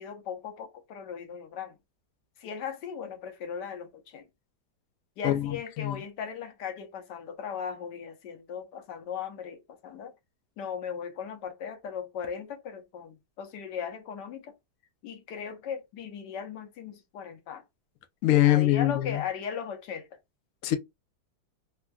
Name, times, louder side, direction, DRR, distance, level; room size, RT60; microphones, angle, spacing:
voice 1, 0.0-1.8 2.4-4.3 5.2-10.1 10.6-14.5 15.0-17.6 18.4-20.2, left 7 dB, 90° left, 1.3 m, -38 dB
voice 2, 5.2-6.0 18.2-18.9 20.6-20.8, left 14 dB, 70° left, 0.9 m, -23 dB
3.5 x 2.1 x 2.2 m
omnidirectional pair, 1.8 m